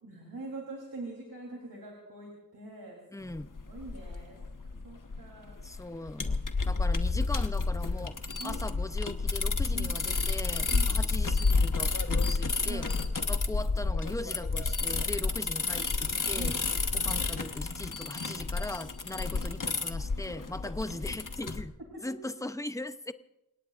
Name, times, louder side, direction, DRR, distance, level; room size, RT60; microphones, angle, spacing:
voice 1, 0.0-3.3 3.7-4.4 4.7-5.9 8.4-8.7 9.7-10.0 10.7-11.0 12.6-12.9 15.2-15.3 16.3-16.6 17.8-18.0 21.9-22.1, right 2 dB, 75° right, -1 dB, 3.6 m, -43 dB
voice 2, 3.1-3.5 5.6-8.2 8.4-12.9 13.3-16.5 16.9-21.7 22.0-23.1, left 1 dB, 10° left, 11 dB, 0.7 m, -39 dB
sound 1, 3.3-21.6, left 3 dB, 60° left, 1.4 m, -30 dB
29.5 x 18.0 x 2.6 m, 0.97 s
wide cardioid pair, 55°, 35 cm